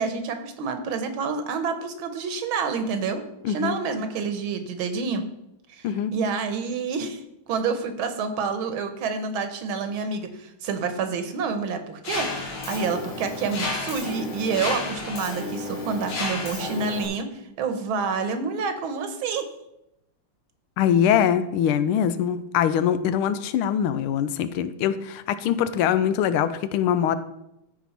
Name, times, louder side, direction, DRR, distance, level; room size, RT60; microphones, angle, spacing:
voice 1, 0.0-3.2 3.5-5.2 5.7-7.2 7.5-19.5, right 5 dB, 75° right, 8 dB, 1.7 m, -28 dB
voice 2, 3.4-3.8 5.8-6.1 20.8-27.2, left 9 dB, 85° left, 12 dB, 1.5 m, -23 dB
Mechanisms, 12.0-17.1, left 2 dB, 65° left, 2.5 m, -31 dB
13.5 x 4.8 x 4.2 m, 0.85 s
omnidirectional pair, 2.3 m